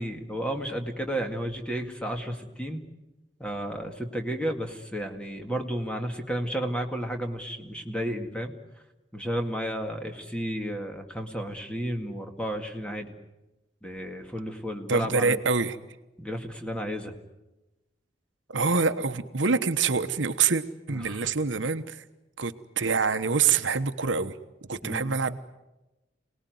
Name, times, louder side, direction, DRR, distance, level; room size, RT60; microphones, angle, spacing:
voice 1, 0.0-2.8 3.4-8.5 9.1-13.2 13.8-15.4 16.2-17.1 20.9-21.2 24.8-25.0, equal, 5° left, 4 dB, 2.1 m, -32 dB
voice 2, 14.9-15.8 18.5-22.0 22.4-24.4 24.7-25.4, right 5 dB, 80° right, 9 dB, 1.1 m, -26 dB
27.0 x 19.0 x 9.4 m, 1.0 s
head